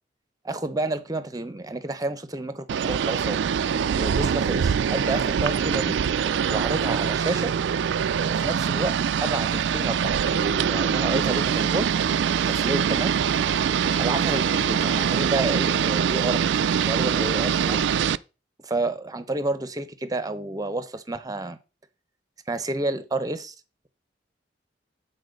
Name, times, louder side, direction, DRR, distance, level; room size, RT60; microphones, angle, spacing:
voice 1, 0.4-3.4 4.0-6.0 6.5-7.6 8.3-11.9 12.5-13.1 14.0-16.4 16.8-17.9 18.6-21.6 22.5-23.5, right 2 dB, 20° right, 0.8 m, -30 dB
sound 1, 2.7-18.2, right 7 dB, 85° right, 0.3 m, -24 dB
sound 2, 12.5-15.7, left 2 dB, 40° left, 1.2 m, -41 dB
8.4 x 4.2 x 5.2 m
head